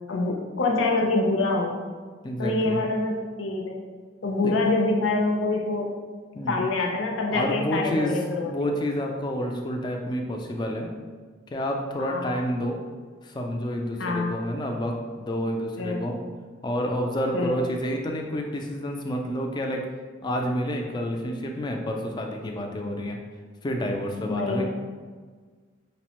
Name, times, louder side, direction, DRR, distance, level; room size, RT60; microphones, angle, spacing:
voice 1, 0.1-1.8 2.4-3.8 4.2-5.9 6.5-8.5 12.0-12.4 14.0-14.3 15.8-16.1 17.3-17.6 24.2-24.7, left 2 dB, 80° left, 0 dB, 0.5 m, -25 dB
voice 2, 2.2-2.8 4.4-4.6 6.4-6.6 7.3-10.9 11.5-12.8 13.2-16.2 16.6-19.8 20.2-23.2 23.6-24.7, equal, 20° left, 2 dB, 0.3 m, -29 dB
5.1 x 2.1 x 2.9 m, 1.5 s
head